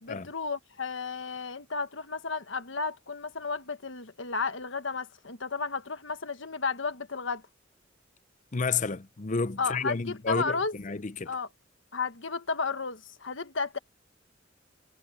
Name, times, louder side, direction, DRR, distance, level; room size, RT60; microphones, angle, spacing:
voice 1, 0.0-7.4 9.6-10.8 11.3-11.5 11.9-13.8, left 4 dB, 75° left, 1.4 m, -33 dB
voice 2, 8.5-11.3, left 4 dB, 40° left, 0.7 m, -31 dB
head